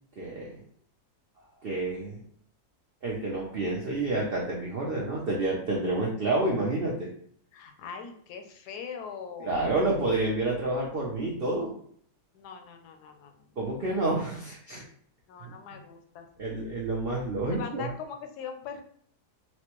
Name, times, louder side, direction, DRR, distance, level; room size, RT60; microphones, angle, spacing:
voice 1, 0.2-0.6 1.6-2.2 3.0-7.1 9.4-11.7 13.6-14.8 15.4-15.5 16.4-17.9, right 2 dB, 70° right, -3 dB, 0.5 m, -29 dB
voice 2, 7.5-9.8 12.3-13.6 15.3-16.6 17.4-18.8, left 6 dB, 80° left, 6 dB, 1.1 m, -41 dB
4.2 x 2.1 x 2.9 m, 0.62 s
omnidirectional pair, 1.7 m